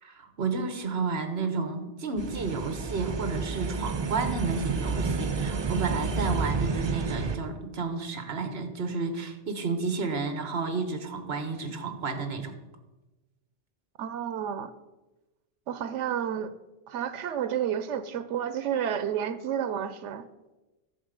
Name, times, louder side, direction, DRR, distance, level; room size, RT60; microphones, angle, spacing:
voice 1, 0.0-12.6, right 4 dB, 60° right, 8 dB, 1.4 m, -31 dB
sound 1, 2.2-7.4, right 4 dB, 40° right, 0.4 m, -30 dB
voice 2, 14.0-14.7 15.7-16.5 16.9-20.3, right 9 dB, 90° right, 13 dB, 0.9 m, -30 dB
11.0 x 6.9 x 5.1 m, 1.1 s
omnidirectional pair, 1.2 m